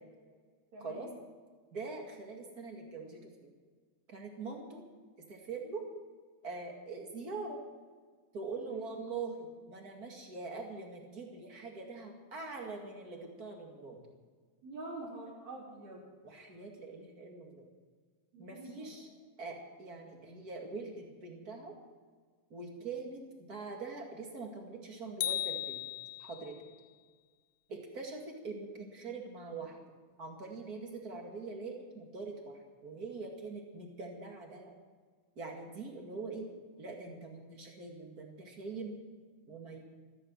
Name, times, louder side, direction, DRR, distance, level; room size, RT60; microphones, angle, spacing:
voice 1, 0.7-1.1 8.6-8.9 14.6-16.0 18.3-18.9, right 2 dB, 55° right, -7 dB, 4.7 m, -46 dB
voice 2, 1.7-3.5 4.1-4.8 5.3-5.9 6.4-7.6 8.3-14.0 16.2-17.7 18.4-19.1 19.4-21.8 22.5-25.8 26.2-26.6 27.7-29.8 30.2-34.7 35.4-36.5 36.8-39.0 39.5-39.9, right 3 dB, 30° right, 2 dB, 2.2 m, -43 dB
sound 1, 25.2-26.6, left 12 dB, 80° left, 2.4 m, -36 dB
14.5 x 14.0 x 6.5 m, 1.5 s
omnidirectional pair, 3.9 m